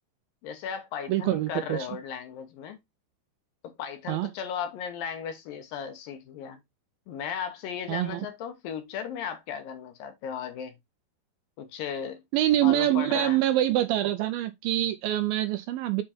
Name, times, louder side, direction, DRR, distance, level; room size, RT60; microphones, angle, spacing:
voice 1, 0.4-2.8 3.6-6.6 7.1-10.7 11.6-12.2 12.6-13.4, left 8 dB, 70° left, 2.4 m, -36 dB
voice 2, 1.1-1.9 4.1-4.3 7.9-8.2 12.3-16.0, right 14 dB, 85° right, 2.1 m, -25 dB
7.6 x 3.7 x 4.2 m
omnidirectional pair, 4.6 m